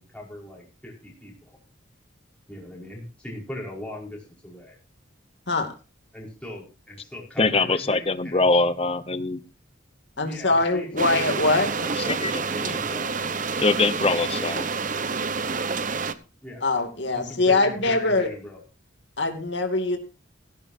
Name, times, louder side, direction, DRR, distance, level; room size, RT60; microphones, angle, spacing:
voice 1, 0.0-1.6 2.5-4.8 6.1-8.9 10.1-11.7 12.1-13.5 16.4-16.6 17.1-18.6, left 1 dB, 5° left, -3 dB, 5.3 m, -40 dB
voice 2, 7.4-9.4 11.8-12.8 13.6-14.7, left 3 dB, 30° left, 13 dB, 0.9 m, -23 dB
voice 3, 10.2-11.7 16.6-18.3 19.2-20.0, left 2 dB, 60° left, 5 dB, 2.4 m, -22 dB
sound 1, 11.0-16.1, right 4 dB, 40° right, 0.9 m, -28 dB
16.5 x 15.5 x 2.7 m, 0.31 s
head